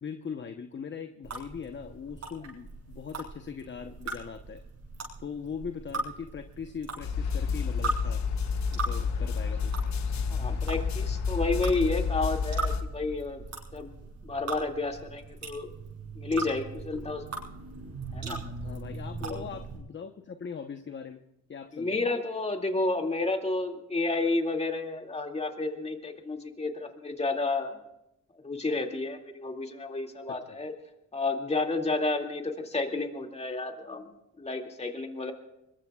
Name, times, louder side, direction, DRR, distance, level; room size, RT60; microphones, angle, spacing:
voice 1, 0.0-4.6 5.2-8.2 8.7-9.7 18.6-21.2 21.5-22.0 30.3-30.6, left 6 dB, 40° left, 7 dB, 1.0 m, -40 dB
sound 1, 1.2-19.8, right 3 dB, 60° right, 7.6 m, -39 dB
sound 2, 7.0-12.8, left 5 dB, 65° left, 1.5 m, -30 dB
voice 2, 10.3-13.4 13.7-13.9 14.2-15.7 16.2-17.3 18.1-18.4 19.2-19.4 21.7-27.7 28.4-30.7 31.1-34.1 34.4-35.3, left 3 dB, 20° left, 3 dB, 2.4 m, -31 dB
25.0 x 22.0 x 2.4 m, 0.86 s
cardioid pair, 90°, 30 cm